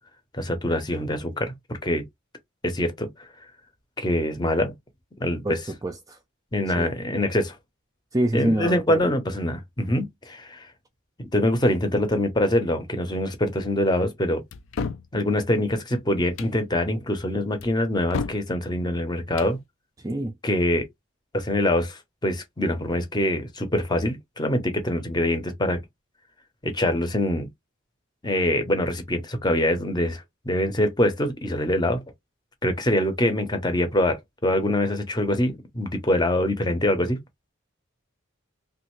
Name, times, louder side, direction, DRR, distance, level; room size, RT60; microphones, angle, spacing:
voice 1, 0.3-2.0 2.6-3.3 4.0-4.7 5.2-5.6 6.5-7.6 8.3-10.7 11.2-14.4 15.1-19.6 20.4-20.9 21.3-25.8 26.6-27.5 28.2-32.0 32.6-37.2, left 1 dB, 20° left, 0.7 m, -24 dB
voice 2, 5.4-6.2 6.8-6.9 8.1-9.1 20.0-20.3, right 1 dB, 15° right, 0.3 m, -27 dB
sound 1, 14.5-15.1 16.2-16.6 17.6-18.5 19.2-19.6, left 4 dB, 75° left, 0.4 m, -32 dB
3.1 x 2.5 x 3.0 m
head